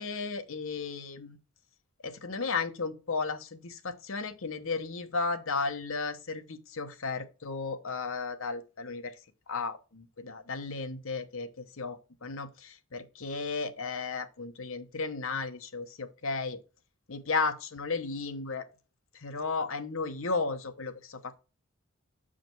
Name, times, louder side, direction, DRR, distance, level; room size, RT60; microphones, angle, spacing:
voice 1, 0.0-1.4 2.0-9.2 9.5-16.6 17.1-18.7 19.1-21.3, left 4 dB, 65° left, 0.9 m, -34 dB
7.0 x 5.0 x 4.5 m
head